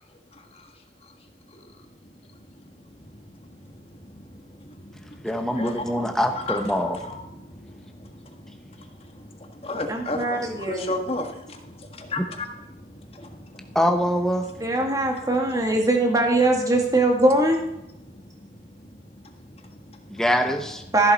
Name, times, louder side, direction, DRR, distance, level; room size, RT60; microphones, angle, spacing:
voice 1, 0.3-0.7 1.5-1.7 2.0-2.1 2.4-2.6 2.9-13.8 14.6-14.8 18.0-20.2, left 2 dB, 30° left, 3 dB, 1.6 m, -36 dB
voice 2, 5.2-7.0 13.7-14.5 20.1-20.8, equal, 5° left, 5 dB, 1.0 m, -23 dB
voice 3, 9.9-11.1 14.6-17.6 20.9-21.1, right 2 dB, 20° right, 2 dB, 1.8 m, -21 dB
14.0 x 11.5 x 4.3 m, 0.85 s
head